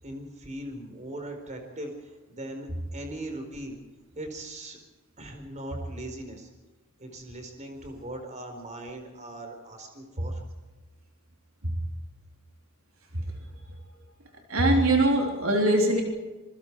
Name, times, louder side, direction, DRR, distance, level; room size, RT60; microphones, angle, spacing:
voice 1, 0.0-2.7 2.9-3.8 4.1-4.8 5.2-6.5 7.0-10.4, right 1 dB, 35° right, 5 dB, 4.6 m, -39 dB
voice 2, 14.5-16.0, right 1 dB, 70° right, 2 dB, 3.5 m, -22 dB
27.0 x 24.0 x 4.8 m, 1.2 s
head